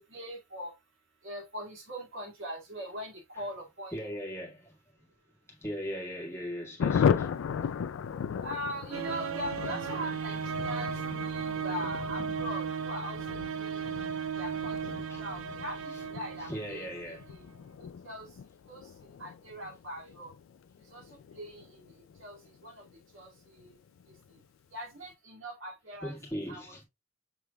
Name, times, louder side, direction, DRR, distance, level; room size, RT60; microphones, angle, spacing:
voice 1, 0.1-0.7 1.2-3.9 8.4-13.9 14.4-14.8 15.2-17.4 17.8-18.3 18.7-18.9 19.2-20.3 20.9-21.0 21.3-21.8 22.2-22.4 22.6-22.8 23.1-23.3 23.6-23.7 24.7-26.1 26.5-26.8, equal, 70° right, 2.1 m, -41 dB
voice 2, 3.9-5.1 5.5-7.7 13.8-14.2 15.1-15.3 15.9-16.0 16.3-17.2 26.0-26.8, equal, 15° left, 1.7 m, -39 dB
Thunder, 6.8-22.9 23.2-23.3 23.6-23.7 24.0-24.4, left 7 dB, 70° left, 0.3 m, -36 dB
sound 1, 8.9-17.3, right 6 dB, 85° right, 0.5 m, -36 dB
6.5 x 3.3 x 2.2 m
head